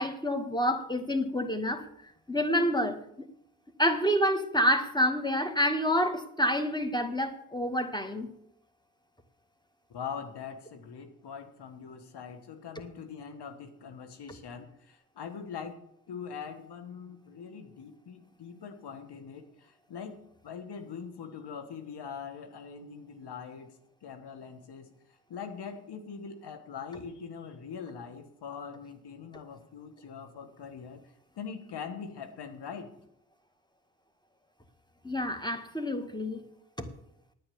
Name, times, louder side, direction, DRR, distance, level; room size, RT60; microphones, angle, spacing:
voice 1, 0.0-1.9 2.3-3.0 3.8-8.3 35.0-36.4 36.8-36.9, equal, 10° left, 1.9 m, -28 dB
voice 2, 9.9-15.8 16.1-23.7 24.0-24.9 25.3-31.0 31.4-32.9, left 6 dB, 80° left, 1.5 m, -42 dB
9.5 x 9.1 x 7.0 m
supercardioid pair, 40°, 40 cm